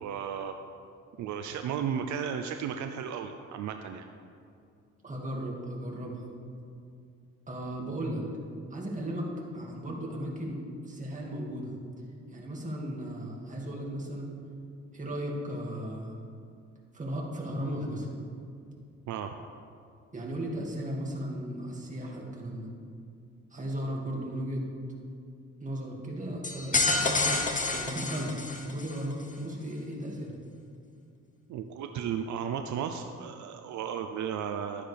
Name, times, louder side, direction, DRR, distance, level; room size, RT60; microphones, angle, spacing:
voice 1, 0.0-0.6 1.2-4.1 19.1-19.3 31.5-34.8, right 8 dB, 70° right, 7 dB, 0.6 m, -34 dB
voice 2, 5.0-6.3 7.5-8.2 8.7-9.3 9.5-11.7 12.3-14.3 14.9-16.1 16.9-18.1 20.1-22.7 23.5-24.6 25.6-27.4 27.7-30.3, equal, 25° right, -2 dB, 2.2 m, -36 dB
sound 1, 26.4-29.0, left 3 dB, 25° left, 1.0 m, -28 dB
12.5 x 9.8 x 3.4 m, 2.4 s
cardioid pair, 90°, 30 cm